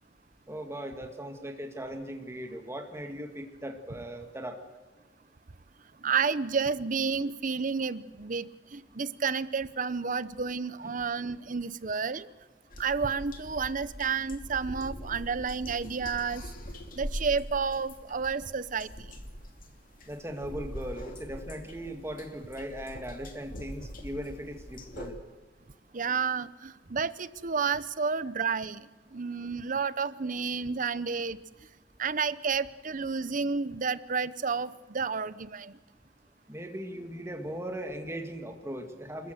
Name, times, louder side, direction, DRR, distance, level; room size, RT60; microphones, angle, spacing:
voice 1, 0.5-4.6 10.8-11.0 20.1-25.2 36.5-39.3, equal, 15° right, 4 dB, 2.0 m, -39 dB
voice 2, 6.0-12.3 12.8-16.4 17.0-18.9 25.9-31.4 32.0-35.8, right 5 dB, 50° right, 16 dB, 0.8 m, -31 dB
sound 1, 12.7-25.1, equal, 50° left, 2.7 m, -43 dB
26.5 x 14.5 x 8.0 m, 1.3 s
head